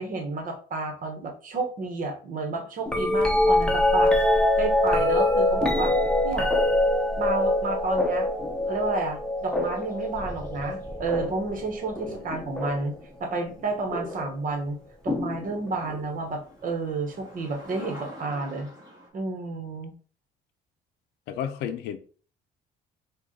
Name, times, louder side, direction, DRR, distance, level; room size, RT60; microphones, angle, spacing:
voice 1, 0.0-4.1 4.6-5.9 6.2-6.5 7.1-8.3 8.7-12.9 13.2-14.8 15.0-18.7 19.1-19.9, right 3 dB, 55° right, 1.3 m, -30 dB
sound 1, 2.9-13.0 13.9-14.3 15.1-16.1 17.8-17.9, left 1 dB, 5° left, 0.9 m, -24 dB
sound 2, 9.4-10.9 14.4-14.5 15.0-15.1 15.3-19.1, equal, 20° right, 1.8 m, -47 dB
voice 2, 21.3-22.0, left 9 dB, 90° left, 0.6 m, -32 dB
4.7 x 2.5 x 3.8 m
cardioid pair, 110°, 17 cm